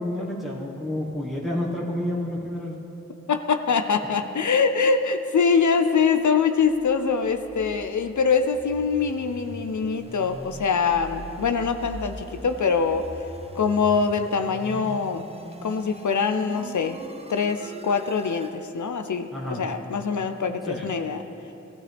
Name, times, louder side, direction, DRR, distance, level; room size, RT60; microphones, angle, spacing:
voice 1, 0.0-2.8 19.3-19.6 20.7-20.9, left 1 dB, ahead, -4 dB, 1.5 m, -29 dB
voice 2, 3.3-13.3 13.6-15.3 15.6-17.0 17.3-21.2, left 5 dB, 80° left, 8 dB, 0.6 m, -24 dB
sound 1, 6.4-18.6, right 1 dB, 20° right, 0.7 m, -42 dB
15.5 x 13.0 x 3.5 m, 3.0 s
wide cardioid pair, 60°, 29 cm